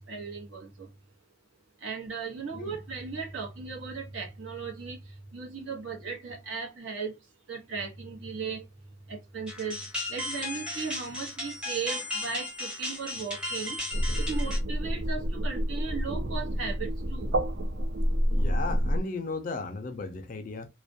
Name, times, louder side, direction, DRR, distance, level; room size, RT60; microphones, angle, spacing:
voice 1, 0.1-0.9 1.8-5.0 5.3-7.1 7.5-8.6 9.1-9.8 10.1-13.8 14.2-17.3, right 5 dB, 70° right, 0.9 m, -37 dB
sound 1, 9.5-14.6, left 2 dB, 5° right, 0.6 m, -35 dB
sound 2, 13.9-19.0, equal, 55° right, 0.4 m, -28 dB
voice 2, 18.3-20.7, left 3 dB, 40° left, 0.3 m, -35 dB
2.3 x 2.1 x 2.5 m
head